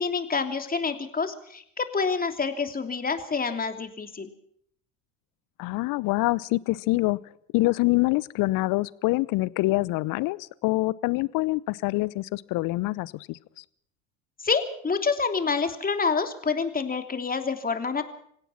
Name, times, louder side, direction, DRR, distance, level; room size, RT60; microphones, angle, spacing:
voice 1, 0.0-4.3 14.4-18.1, left 5 dB, 20° left, 7 dB, 3.1 m, -27 dB
voice 2, 5.6-7.2 7.5-13.6, left 21 dB, 55° left, 21 dB, 0.9 m, -25 dB
25.5 x 17.0 x 5.9 m, 0.68 s
hypercardioid pair, 70°, 40 cm